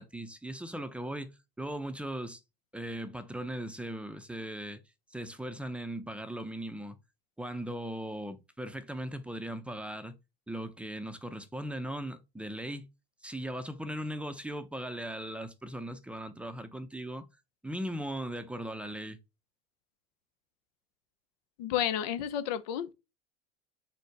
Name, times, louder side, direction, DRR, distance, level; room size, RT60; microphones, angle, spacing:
voice 1, 0.0-2.4 2.7-4.8 5.1-7.0 7.4-10.2 10.5-12.9 13.2-17.3 17.6-19.2, right 1 dB, 5° right, 0.5 m, -38 dB
voice 2, 21.6-22.9, left 10 dB, 70° left, 0.6 m, -31 dB
4.3 x 2.1 x 4.6 m
hypercardioid pair, 90°, 21 cm